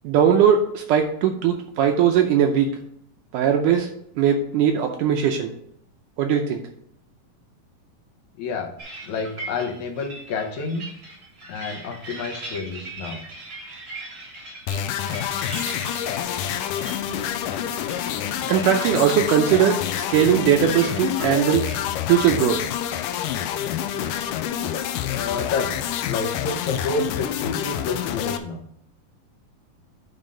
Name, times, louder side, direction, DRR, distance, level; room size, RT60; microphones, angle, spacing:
voice 1, 0.0-2.8 3.3-3.9 4.2-5.5 6.2-6.6 18.5-21.7 22.1-22.6, right 8 dB, 80° right, 4 dB, 2.0 m, -19 dB
voice 2, 8.4-8.7 9.0-10.9 11.5-13.2 25.1-28.7, left 4 dB, 65° left, 3 dB, 2.0 m, -29 dB
sound 1, 8.8-21.8, right 2 dB, 30° right, 4.0 m, -40 dB
sound 2, 14.7-28.4, left 10 dB, 80° left, 1.9 m, -27 dB
11.0 x 4.0 x 5.1 m, 0.71 s
omnidirectional pair, 4.2 m